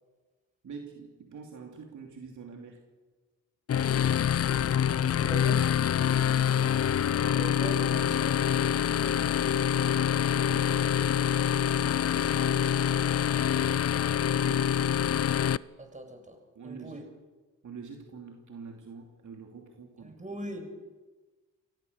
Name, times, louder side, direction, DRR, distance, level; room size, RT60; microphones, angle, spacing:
voice 1, 0.6-2.9 6.4-6.8 8.8-12.1 14.4-14.9 16.5-17.1 17.6-20.2, right 5 dB, 55° right, 2 dB, 2.9 m, -46 dB
sound 1, 3.7-15.6, left 9 dB, 45° left, 0.6 m, -26 dB
voice 2, 5.1-5.7 7.3-8.4 15.8-16.4 16.6-17.0 20.0-20.6, right 1 dB, 20° right, 5 dB, 6.7 m, -40 dB
24.5 x 17.0 x 6.9 m, 1.3 s
supercardioid pair, 50°, 35 cm